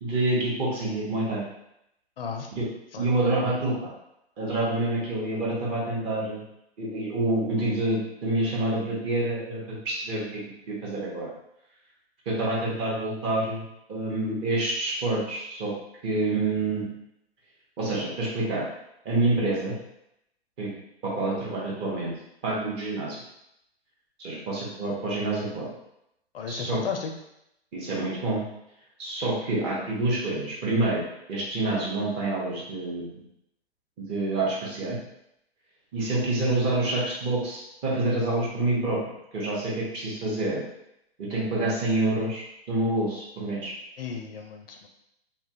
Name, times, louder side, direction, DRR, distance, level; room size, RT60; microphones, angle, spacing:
voice 1, 0.0-1.4 2.6-2.7 3.0-3.9 4.4-6.4 6.8-10.4 10.7-11.3 12.3-15.7 16.0-16.9 17.8-18.6 19.0-19.8 20.6-20.7 21.0-22.1 22.4-23.2 24.2-25.7 26.5-26.8 27.7-28.4 29.0-31.0 31.3-33.2 34.0-35.0 35.9-39.0 39.3-40.6 41.2-43.7, right 2 dB, 20° right, -4 dB, 0.6 m, -27 dB
voice 2, 2.2-2.5 2.9-3.2 26.3-27.1 44.0-44.9, left 6 dB, 65° left, 3 dB, 0.4 m, -34 dB
2.8 x 2.2 x 2.6 m, 0.81 s
hypercardioid pair, 130°, 32 cm